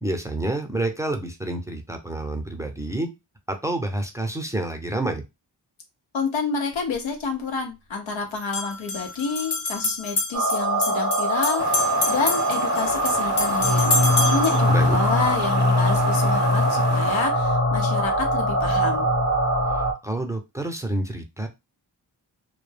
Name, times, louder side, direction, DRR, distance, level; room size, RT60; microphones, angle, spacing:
voice 1, 0.0-3.1 3.5-5.2 14.7-15.0 19.7-21.5, right 1 dB, 5° right, 4 dB, 0.5 m, -28 dB
voice 2, 6.1-13.9 14.3-19.1, left 4 dB, 90° left, 4 dB, 0.7 m, -29 dB
sound 1, 6.7-6.8 8.4-14.6, left 3 dB, 60° left, 0.9 m, -28 dB
sound 2, 10.3-19.9, equal, 35° left, 0.8 m, -22 dB
sound 3, 11.6-17.3, right 3 dB, 40° right, 0.7 m, -35 dB
2.2 x 2.0 x 3.2 m, 0.23 s
cardioid pair, 55°, 45 cm